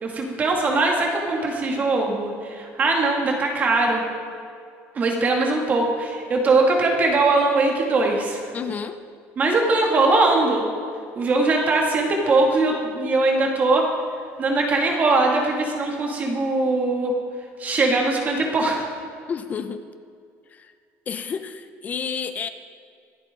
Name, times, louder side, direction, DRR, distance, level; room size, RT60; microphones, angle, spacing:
voice 1, 0.0-4.0 4.9-8.5 9.4-10.6 11.2-13.9 14.4-17.1 17.6-18.8, right 3 dB, 30° right, 0 dB, 2.4 m, -21 dB
voice 2, 8.5-9.0 19.3-19.8 20.5-20.7 21.1-22.5, left 6 dB, 30° left, 10 dB, 0.6 m, -30 dB
25.0 x 8.7 x 3.9 m, 2.3 s
cardioid pair, 155°, 6 cm